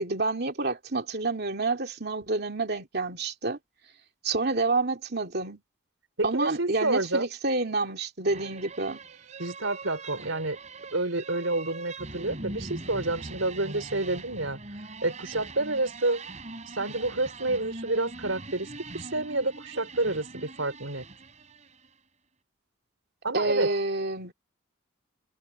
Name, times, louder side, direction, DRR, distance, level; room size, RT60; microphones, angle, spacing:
voice 1, 0.0-3.6 4.2-5.6 6.2-9.0 23.3-24.3, right 3 dB, 50° right, 2.6 m, -28 dB
voice 2, 6.2-7.3 9.4-10.6 10.9-14.6 15.0-16.2 16.8-18.7 18.9-21.0 23.2-23.7, right 2 dB, 80° right, 4.9 m, -29 dB
sound 1, 8.2-21.9, right 2 dB, 35° right, 3.4 m, -42 dB
head